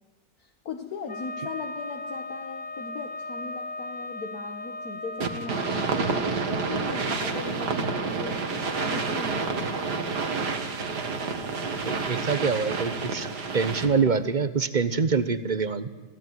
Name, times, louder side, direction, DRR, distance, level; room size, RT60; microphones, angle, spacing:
voice 1, 0.4-6.3 6.7-9.8, left 5 dB, 55° left, 5 dB, 1.7 m, -39 dB
Wind instrument woodwind instrument, 1.1-6.2, left 2 dB, 30° left, 1.0 m, -37 dB
sound 1, 5.2-14.1, right 4 dB, 65° right, 2.4 m, -29 dB
voice 2, 11.8-13.3 13.5-15.9, right 5 dB, 30° right, 13 dB, 0.9 m, -25 dB
27.5 x 16.5 x 9.6 m, 1.3 s
omnidirectional pair, 2.0 m